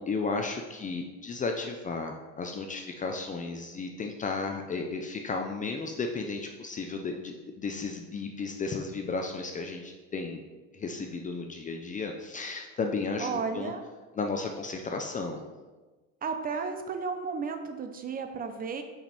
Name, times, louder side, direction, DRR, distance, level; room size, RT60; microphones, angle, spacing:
voice 1, 0.0-10.4 10.7-13.7 14.1-15.4, left 4 dB, 25° left, 3 dB, 0.5 m, -34 dB
voice 2, 13.2-13.9 16.2-18.8, right 5 dB, 30° right, 7 dB, 0.7 m, -33 dB
5.8 x 5.2 x 4.2 m, 1.2 s
cardioid pair, 125°, 31 cm